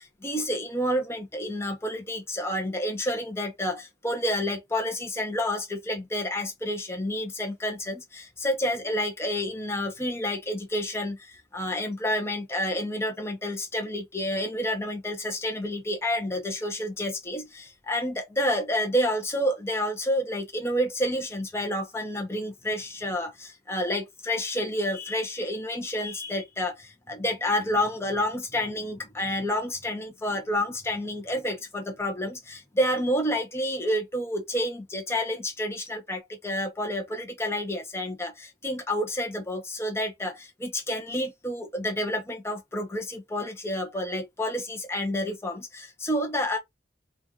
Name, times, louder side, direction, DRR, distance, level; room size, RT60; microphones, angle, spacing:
voice 1, 0.2-3.8 4.0-11.2 11.5-23.3 23.7-26.7 27.1-40.3 40.6-46.6, left 1 dB, 15° left, 0.7 m, -29 dB
4.3 x 2.4 x 3.6 m
head